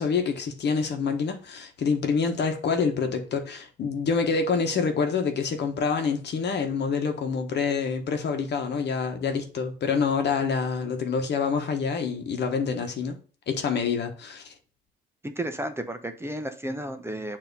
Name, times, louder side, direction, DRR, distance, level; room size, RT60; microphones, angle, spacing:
voice 1, 0.0-13.1 13.5-14.5, left 5 dB, 60° left, 1.2 m, -27 dB
voice 2, 15.2-17.4, right 1 dB, 10° right, 0.7 m, -33 dB
7.1 x 2.9 x 5.3 m
cardioid pair, 90°, 20 cm